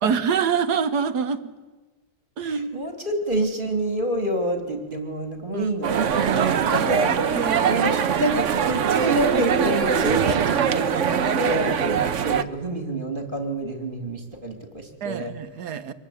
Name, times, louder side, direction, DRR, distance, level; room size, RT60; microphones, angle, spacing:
voice 1, 0.0-1.4 2.4-2.9 5.5-5.7 7.3-8.0 15.0-15.9, right 6 dB, 85° right, 11 dB, 1.7 m, -26 dB
voice 2, 2.4-15.3, right 1 dB, 30° right, 5 dB, 2.9 m, -28 dB
sound 1, 5.8-12.4, right 7 dB, 55° right, 1.1 m, -22 dB
25.0 x 20.0 x 8.5 m, 1.2 s
omnidirectional pair, 1.7 m